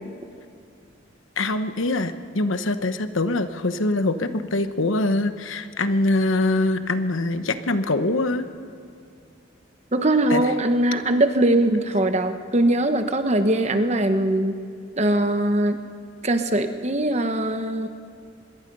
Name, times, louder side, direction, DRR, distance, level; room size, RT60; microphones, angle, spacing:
voice 1, 1.4-8.5 10.3-10.5, left 2 dB, 85° left, 10 dB, 1.1 m, -23 dB
voice 2, 9.9-14.6 15.0-15.8 16.2-17.9, right 1 dB, 35° right, 8 dB, 1.1 m, -21 dB
25.0 x 21.0 x 5.5 m, 2.5 s
head